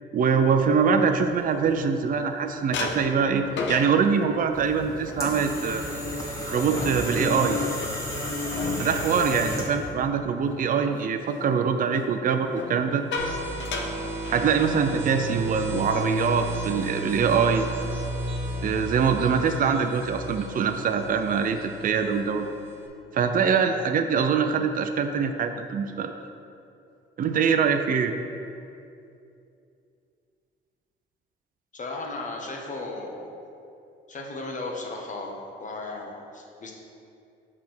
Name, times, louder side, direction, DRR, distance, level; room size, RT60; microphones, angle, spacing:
voice 1, 0.1-5.8 6.5-7.6 8.8-13.1 14.3-17.7 18.6-22.5 23.1-26.1 27.2-28.1, right 6 dB, 45° right, 6 dB, 0.5 m, -24 dB
sound 1, 0.9-2.3 2.7-10.6 10.9-11.2 12.4-15.0 15.3-15.5 15.8-16.1 16.6-17.3, left 4 dB, 70° left, 0.7 m, -36 dB
sound 2, 4.5-9.9, left 1 dB, 15° left, 1.5 m, -32 dB
sound 3, 13.2-22.9, right 1 dB, 80° right, 1.2 m, -34 dB
voice 2, 31.7-33.4 34.1-36.7, left 2 dB, 40° left, 0 dB, 1.2 m, -35 dB
6.7 x 3.6 x 6.1 m, 2.6 s
cardioid pair, 90°, 20 cm